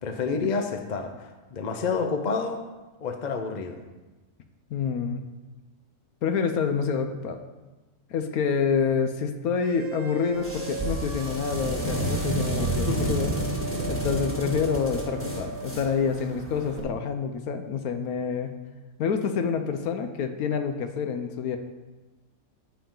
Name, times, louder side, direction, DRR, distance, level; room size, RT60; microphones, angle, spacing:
voice 1, 0.0-2.6 3.0-3.8 12.6-13.1, left 4 dB, 45° left, 5 dB, 0.6 m, -29 dB
voice 2, 4.7-5.2 6.2-7.4 8.1-13.3 13.9-18.5 19.0-21.6, left 6 dB, 70° left, 7 dB, 1.1 m, -27 dB
sound 1, 9.6-15.8, right 5 dB, 65° right, 1.2 m, -37 dB
sound 2, 10.3-16.8, right 1 dB, 10° left, 1.7 m, -30 dB
13.5 x 4.8 x 3.8 m, 1.2 s
omnidirectional pair, 1.7 m